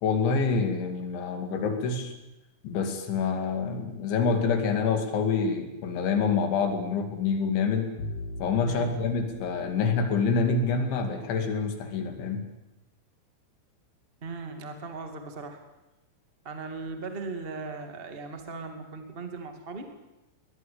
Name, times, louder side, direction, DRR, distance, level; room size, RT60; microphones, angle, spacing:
voice 1, 0.0-2.1 2.6-7.9 8.4-12.4, left 5 dB, 80° left, 6 dB, 4.8 m, -27 dB
Bowed string instrument, 8.0-11.0, left 1 dB, 45° left, 2.8 m, -41 dB
voice 2, 14.2-15.6 16.4-19.9, right 4 dB, 25° right, 5 dB, 1.3 m, -38 dB
22.0 x 20.0 x 8.7 m, 0.96 s
omnidirectional pair, 5.3 m